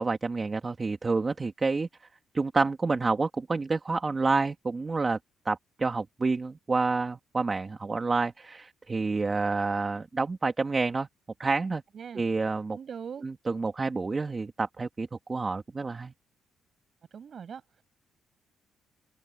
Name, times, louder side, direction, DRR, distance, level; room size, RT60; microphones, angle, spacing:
voice 1, 0.0-1.9 2.3-5.2 5.4-11.1 11.4-11.8 12.1-12.8 13.2-16.1, right 3 dB, 30° right, 2.6 m, -28 dB
voice 2, 12.7-13.2 17.1-17.8, right 7 dB, 50° right, 7.9 m, -41 dB
open air
cardioid pair, 90°, 0 cm